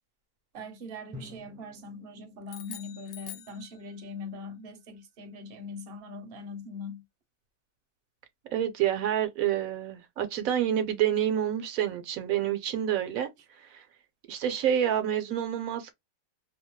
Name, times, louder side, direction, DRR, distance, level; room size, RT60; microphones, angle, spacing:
voice 1, 0.5-7.0, left 3 dB, 50° right, 0.8 m, -41 dB
Drum, 1.1-3.8, left 1 dB, 10° right, 0.6 m, -50 dB
sound 1, 2.5-4.2, left 11 dB, 75° left, 0.5 m, -46 dB
voice 2, 8.5-13.3 13.7-13.8 14.3-15.9, right 10 dB, 70° right, 1.0 m, -28 dB
2.7 x 2.0 x 3.0 m
omnidirectional pair, 1.6 m